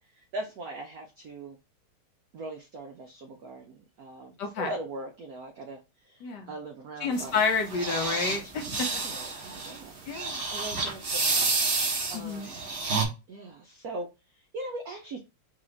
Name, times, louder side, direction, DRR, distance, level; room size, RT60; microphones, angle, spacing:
voice 1, 0.1-1.6 2.3-7.4 8.5-10.0 10.5-12.6 13.3-15.2, right 2 dB, 85° right, 0.8 m, -41 dB
voice 2, 4.4-4.7 6.2-6.5 7.0-8.4 8.8-8.9 10.1-10.4 12.1-12.5, left 5 dB, 65° left, 1.1 m, -29 dB
Man Snoring, 7.1-13.0, right 4 dB, 45° right, 0.9 m, -30 dB
4.1 x 2.8 x 3.9 m
omnidirectional pair, 2.3 m